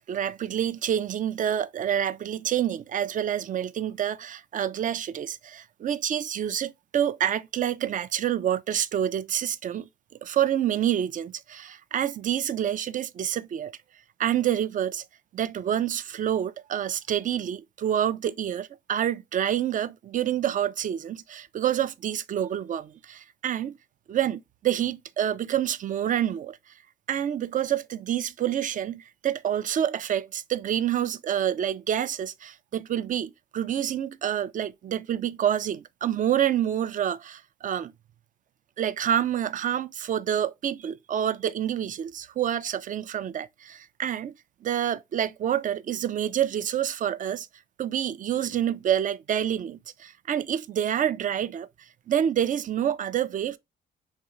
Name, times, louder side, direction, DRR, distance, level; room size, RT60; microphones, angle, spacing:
voice 1, 0.0-9.9 10.2-13.7 14.2-15.0 15.3-23.7 24.1-26.6 27.1-37.9 38.8-44.3 44.6-47.5 47.8-51.7 52.1-53.6, right 10 dB, 40° right, 0.4 m, -27 dB
3.7 x 3.2 x 2.8 m
cardioid pair, 90°, 20 cm